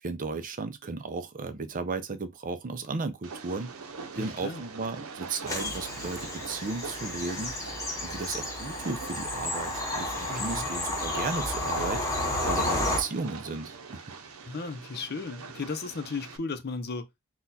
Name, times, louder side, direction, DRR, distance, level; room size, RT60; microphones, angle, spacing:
voice 1, 0.0-3.7 4.1-7.5 8.0-12.1 12.5-14.1, right 3 dB, 40° right, 0.5 m, -35 dB
Train, 3.2-16.4, right 5 dB, 90° right, 0.7 m, -43 dB
voice 2, 4.1-4.6 10.3-10.7 14.5-17.1, left 4 dB, 50° left, 0.6 m, -35 dB
Bird vocalization bird call bird song / Train, 5.5-13.0, left 2 dB, 15° left, 1.3 m, -32 dB
4.2 x 2.3 x 4.0 m
head